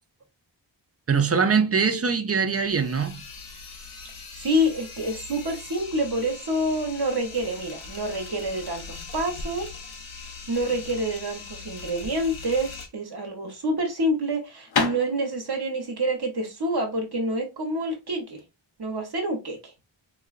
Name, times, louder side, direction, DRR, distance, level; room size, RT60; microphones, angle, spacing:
voice 1, 1.1-3.2, right 5 dB, 30° right, 0.5 m, -22 dB
sound 1, 2.5-12.9, left 4 dB, 85° left, 0.8 m, -41 dB
voice 2, 4.3-9.7 10.5-18.4 18.8-19.7, right 1 dB, 55° right, 0.9 m, -27 dB
sound 2, 12.9-18.5, left 4 dB, 55° left, 0.7 m, -32 dB
3.8 x 2.3 x 2.3 m
wide cardioid pair, 95°, 47 cm